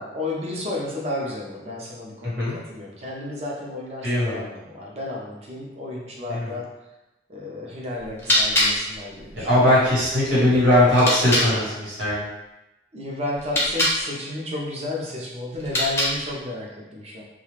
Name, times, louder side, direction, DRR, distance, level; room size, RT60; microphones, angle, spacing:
voice 1, 0.0-6.6 7.3-9.8 12.9-17.2, left 2 dB, 35° right, -3 dB, 0.6 m, -32 dB
voice 2, 4.0-4.4 6.3-6.5 9.4-12.3, left 1 dB, 85° right, -8 dB, 1.4 m, -19 dB
sound 1, 8.0-11.5 13.3-14.0 15.5-16.4, left 1 dB, 15° left, 0.6 m, -25 dB
2.4 x 2.2 x 3.1 m, 0.98 s
head